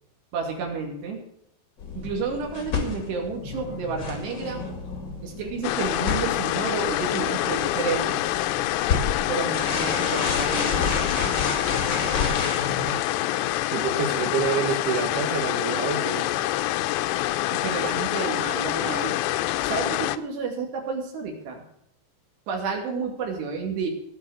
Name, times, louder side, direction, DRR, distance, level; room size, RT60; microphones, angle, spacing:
voice 1, 0.3-1.2 2.0-4.6 5.2-8.3 9.3-11.0 17.5-19.2 19.6-21.6 22.5-23.9, right 5 dB, 65° right, 1 dB, 4.5 m, -30 dB
sound 1, 1.8-12.9, left 4 dB, 60° left, 1.1 m, -30 dB
sound 2, 5.6-20.2, left 15 dB, 85° left, 2.4 m, -26 dB
voice 2, 13.7-16.3, right 6 dB, 85° right, 7 dB, 1.8 m, -27 dB
18.0 x 6.1 x 6.4 m, 0.75 s
omnidirectional pair, 5.5 m